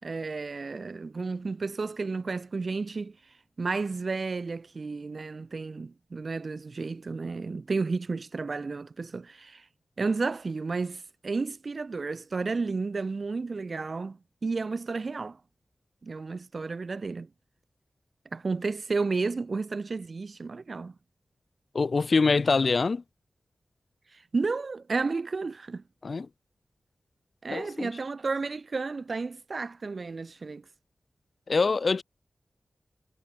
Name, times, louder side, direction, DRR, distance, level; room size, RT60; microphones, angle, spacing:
voice 1, 0.0-3.2 3.6-9.6 10.0-15.4 16.0-17.3 18.3-20.9 24.3-25.8 27.4-30.6, right 4 dB, 60° right, 4.5 m, -32 dB
voice 2, 21.7-23.0 26.0-26.3 27.5-27.9 31.5-32.0, left 4 dB, 65° left, 1.7 m, -24 dB
cardioid pair, 50°, 0 cm